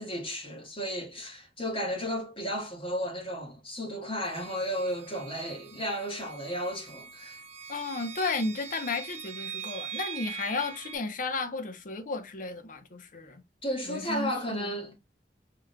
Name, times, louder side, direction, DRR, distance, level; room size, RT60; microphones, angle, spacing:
voice 1, 0.0-7.4 13.6-15.0, equal, 30° left, 1.6 m, -34 dB
sound 1, 4.2-11.0, right 7 dB, 40° right, 0.4 m, -42 dB
voice 2, 7.7-13.4 13.9-14.7, left 3 dB, 50° left, 0.7 m, -33 dB
4.8 x 3.6 x 2.2 m
head